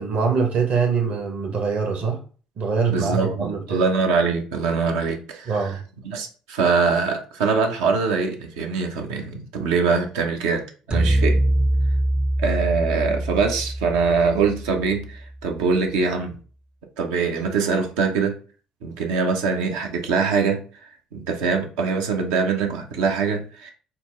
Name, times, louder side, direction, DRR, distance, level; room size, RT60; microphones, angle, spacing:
voice 1, 0.0-2.2 2.6-3.8 5.5-5.8, right 5 dB, 55° right, 3 dB, 1.1 m, -23 dB
voice 2, 2.9-5.8 6.0-11.4 12.4-16.3 17.0-18.4 18.8-20.6 21.1-23.7, right 5 dB, 75° right, 3 dB, 0.7 m, -23 dB
sound 1, 10.9-15.2, right 1 dB, 25° right, 0.4 m, -23 dB
4.3 x 2.1 x 3.6 m, 0.39 s
hypercardioid pair, 60°, 3 cm